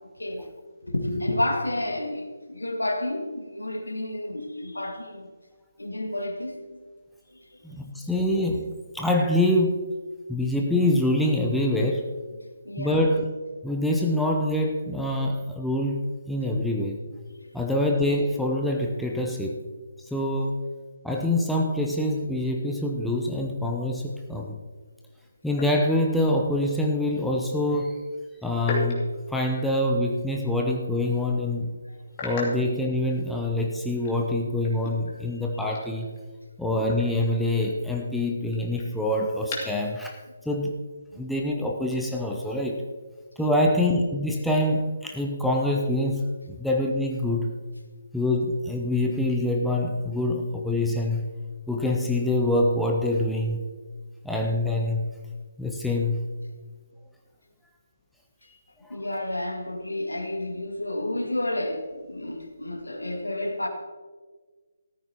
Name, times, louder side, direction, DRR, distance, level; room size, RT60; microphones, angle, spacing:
voice 1, 0.8-5.3 5.8-6.8 7.3-7.6 12.6-13.0 31.9-32.0 35.1-35.2 41.1-41.2 43.4-43.6 58.9-63.7, left 1 dB, 75° left, 3 dB, 1.9 m, -31 dB
voice 2, 7.6-9.9 10.3-12.1 12.8-13.2 13.6-17.0 17.5-19.6 20.1-20.6 21.0-24.6 25.4-28.0 28.4-29.0 29.3-31.7 32.2-36.1 36.6-40.2 40.5-40.7 41.1-42.8 43.4-47.5 48.1-51.3 51.7-53.6 54.2-55.0 55.6-56.2 58.8-59.0, left 1 dB, ahead, -1 dB, 0.8 m, -25 dB
sound 1, 25.5-26.4 28.6-30.2 30.6-30.8 31.2-31.3 32.1-33.5 33.9-36.4 36.7-39.9, left 1 dB, 25° left, 2.5 m, -37 dB
14.0 x 13.5 x 2.9 m, 1.4 s
figure-of-eight pair, 145°, 0 cm